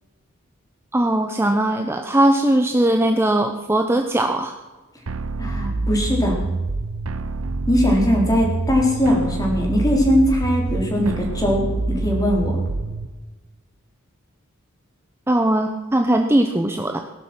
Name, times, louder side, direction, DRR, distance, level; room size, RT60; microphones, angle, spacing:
voice 1, 0.9-4.6 15.3-17.0, right 1 dB, 10° right, 4 dB, 0.8 m, -19 dB
sound 1, 5.1-13.1, right 3 dB, 75° right, 0.8 m, -26 dB
voice 2, 5.4-6.4 7.7-12.6, equal, 15° left, 0 dB, 3.7 m, -20 dB
18.5 x 11.5 x 6.0 m, 1.2 s
head